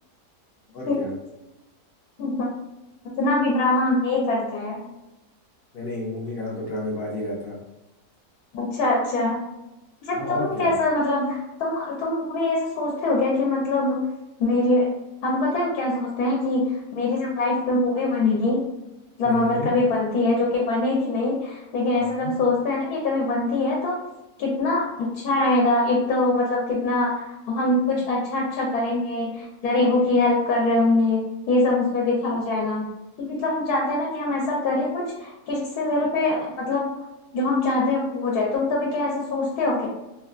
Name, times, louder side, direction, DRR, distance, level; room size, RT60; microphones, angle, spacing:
voice 1, 0.7-1.1 5.7-7.6 10.1-10.7 19.2-19.7 21.9-22.3, left 1 dB, 60° left, -3 dB, 0.6 m, -31 dB
voice 2, 3.2-4.9 8.5-9.4 10.1-14.0 14.4-14.9 15.2-18.6 19.2-24.0 24.4-32.8 33.2-36.9 37.3-39.9, left 2 dB, 75° left, -2 dB, 1.1 m, -23 dB
3.2 x 2.2 x 2.3 m, 0.98 s
omnidirectional pair, 1.7 m